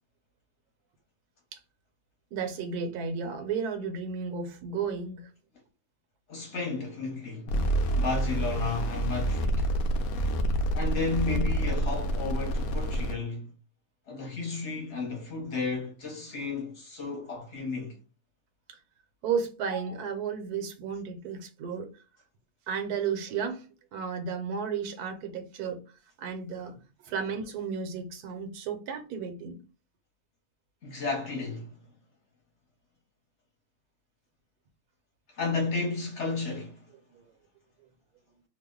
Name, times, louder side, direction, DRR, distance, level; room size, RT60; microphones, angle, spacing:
voice 1, 2.3-5.3 18.7-18.8 19.2-21.9 22.7-23.7 23.9-25.8 26.2-26.7 27.0-29.6 37.1-37.2, right 6 dB, 80° right, 1.2 m, -33 dB
voice 2, 6.3-7.5 8.0-9.7 10.7-13.5 14.1-18.0 30.8-31.7 35.3-36.9, left 4 dB, 50° left, 1.2 m, -33 dB
sound 1, 7.5-13.1, right 1 dB, 70° left, 1.0 m, -28 dB
2.9 x 2.1 x 3.6 m
omnidirectional pair, 1.6 m